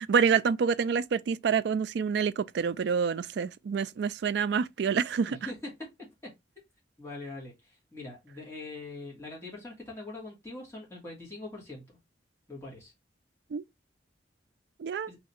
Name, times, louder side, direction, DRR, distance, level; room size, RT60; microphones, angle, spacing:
voice 1, 0.0-5.4 13.5-13.6 14.8-15.1, right 6 dB, 65° right, 0.3 m, -27 dB
voice 2, 5.3-5.7 6.2-6.3 7.0-12.0 12.5-12.9 15.1-15.2, left 2 dB, 15° left, 1.6 m, -42 dB
3.3 x 2.8 x 4.1 m
head